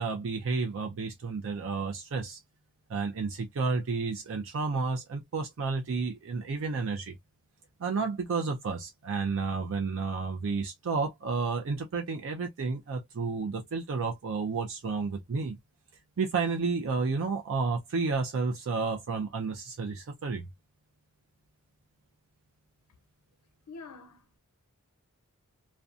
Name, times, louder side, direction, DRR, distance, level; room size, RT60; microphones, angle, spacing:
voice 1, 0.0-2.4 2.9-7.2 7.8-15.6 16.2-20.5, right 4 dB, 60° right, 0.5 m, -31 dB
voice 2, 23.7-24.4, left 4 dB, 80° left, 0.4 m, -46 dB
2.6 x 2.2 x 2.3 m
head